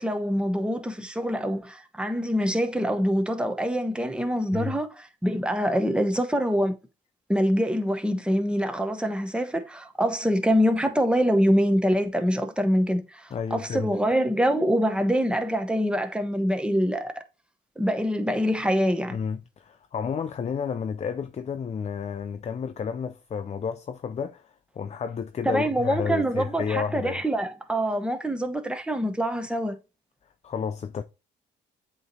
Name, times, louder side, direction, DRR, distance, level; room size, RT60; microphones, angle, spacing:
voice 1, 0.0-6.7 7.3-17.1 17.8-19.2 25.4-29.8, equal, 5° right, 0.9 m, -25 dB
voice 2, 13.3-14.0 19.1-27.2 30.4-31.0, left 6 dB, 35° left, 0.5 m, -31 dB
7.8 x 3.1 x 4.0 m
cardioid pair, 90°, 20 cm